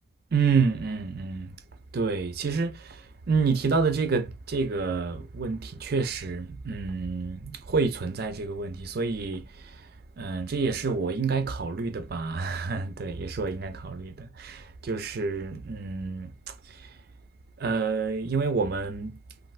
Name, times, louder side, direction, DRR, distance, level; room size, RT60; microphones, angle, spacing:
voice 1, 0.3-1.6 1.9-9.9 10.2-17.0 17.6-19.2, right 4 dB, 55° right, 0.5 m, -28 dB
3.2 x 2.5 x 2.4 m
head